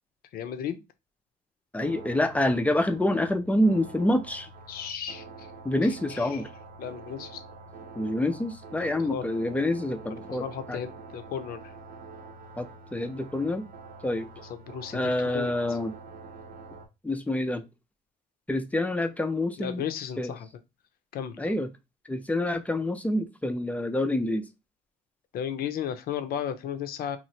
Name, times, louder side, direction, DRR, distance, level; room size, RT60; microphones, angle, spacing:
voice 1, 0.3-0.8 4.7-5.5 5.8-6.4 6.8-7.4 9.1-9.3 10.3-11.6 14.5-15.8 19.6-20.5 21.1-21.5 25.3-27.2, left 8 dB, 65° left, 0.5 m, -35 dB
voice 2, 1.7-4.5 5.6-6.5 8.0-10.8 12.6-13.7 14.0-14.3 14.9-15.9 17.0-17.6 18.5-19.8 20.2-20.3 21.4-21.7 22.1-24.5, left 1 dB, 10° left, 0.4 m, -27 dB
sound 1, 1.8-16.9, right 3 dB, 65° right, 0.8 m, -46 dB
3.1 x 2.4 x 2.7 m
cardioid pair, 110°, 17 cm